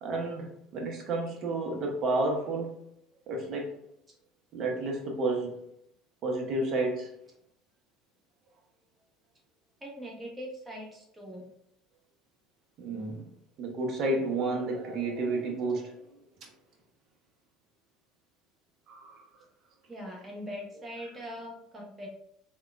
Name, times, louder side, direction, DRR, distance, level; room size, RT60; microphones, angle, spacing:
voice 1, 0.0-2.7 3.3-3.7 4.5-5.6 6.2-7.1 12.8-13.2 13.6-16.0 16.4-16.5 18.9-19.2, right 2 dB, 50° right, 1 dB, 0.7 m, -31 dB
voice 2, 9.8-11.4 19.9-22.1, equal, 20° right, -2 dB, 0.9 m, -41 dB
3.5 x 2.2 x 2.4 m, 0.74 s
figure-of-eight pair, 65°, 0 cm